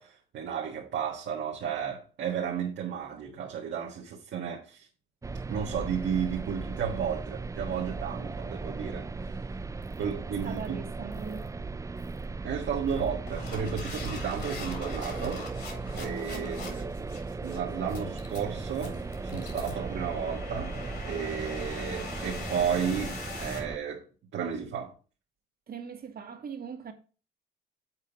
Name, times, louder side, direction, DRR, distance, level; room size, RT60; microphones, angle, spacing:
voice 1, 0.0-4.9 5.5-9.5 10.0-10.8 12.4-15.5 15.9-17.1 17.4-20.8 21.1-24.1 24.3-24.9, right 7 dB, 70° right, 1.5 m, -33 dB
sound 1, 5.2-23.8, right 3 dB, 15° right, 0.4 m, -37 dB
sound 2, 9.8-10.0 10.4-10.7 11.1-11.5 12.0-12.2 12.9-23.6, left 4 dB, 55° left, 3.4 m, -42 dB
voice 2, 10.0-11.5 16.2-16.8 25.7-26.9, right 6 dB, 50° right, 1.5 m, -41 dB
7.6 x 4.3 x 5.3 m
cardioid pair, 90°, 20 cm